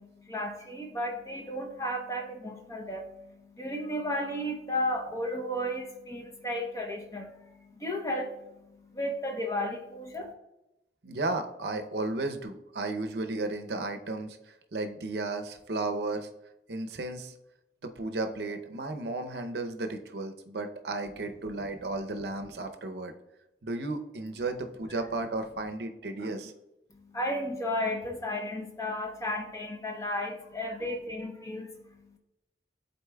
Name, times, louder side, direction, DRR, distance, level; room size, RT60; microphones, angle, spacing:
voice 1, 0.0-10.3 26.9-32.2, left 1 dB, 20° left, 2 dB, 0.7 m, -34 dB
voice 2, 11.0-16.3 16.7-17.3 17.8-23.1 23.6-26.5, right 2 dB, 70° right, 7 dB, 0.6 m, -34 dB
11.5 x 4.1 x 2.2 m, 0.94 s
head